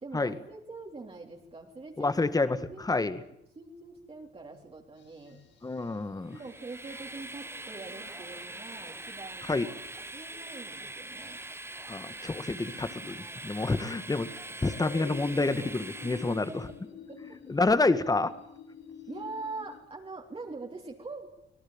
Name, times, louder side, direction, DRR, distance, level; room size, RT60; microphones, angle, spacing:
voice 1, 0.0-2.2 2.7-5.4 6.3-9.5 10.1-11.4 15.9-16.2 16.5-16.6 17.1-17.2 19.1-21.3, right 3 dB, 30° right, 0 dB, 3.6 m, -43 dB
voice 2, 2.0-3.2 5.6-6.4 9.5-9.7 11.9-14.3 14.6-16.7 17.5-18.3, left 3 dB, 20° left, 13 dB, 1.8 m, -28 dB
sound 1, 5.0-19.8, left 5 dB, 65° left, 5.7 m, -49 dB
Train, 6.3-16.7, right 2 dB, 10° right, 1.4 m, -43 dB
25.5 x 18.0 x 8.9 m, 0.75 s
cardioid pair, 90°, 20 cm